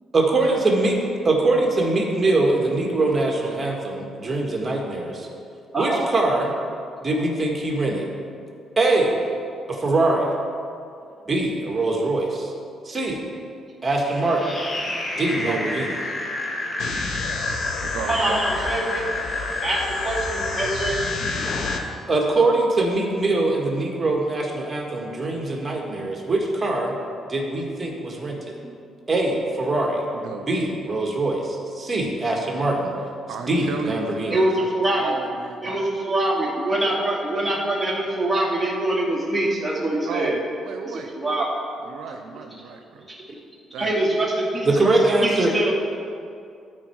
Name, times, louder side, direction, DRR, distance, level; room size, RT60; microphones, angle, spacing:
voice 1, 0.1-1.0 1.2-5.3 5.8-6.5 7.0-8.1 8.8-9.2 9.7-10.3 11.3-12.5 12.9-13.2 13.8-14.6 15.1-15.9 22.1-27.0 27.3-28.6 29.1-30.0 30.5-32.9 33.5-34.4 43.3-43.4 44.7-45.5, right 2 dB, 30° right, -1 dB, 1.8 m, -22 dB
voice 2, 5.7-6.1 18.1-19.1 19.6-21.0 28.6-28.7 34.3-35.2 35.6-40.4 40.8-41.5 43.8-45.7, right 1 dB, 10° right, -5 dB, 2.4 m, -24 dB
sound 1, 14.0-21.7, left 2 dB, 35° left, 1.5 m, -29 dB
voice 3, 15.3-16.2 17.8-18.7 30.1-30.5 33.3-35.8 40.1-41.1 41.8-43.1 43.7-44.0, right 5 dB, 80° right, 4 dB, 0.6 m, -34 dB
sound 2, 16.8-21.8, left 4 dB, 75° left, 0.8 m, -32 dB
13.0 x 4.6 x 4.7 m, 2.4 s
cardioid pair, 90°, 0 cm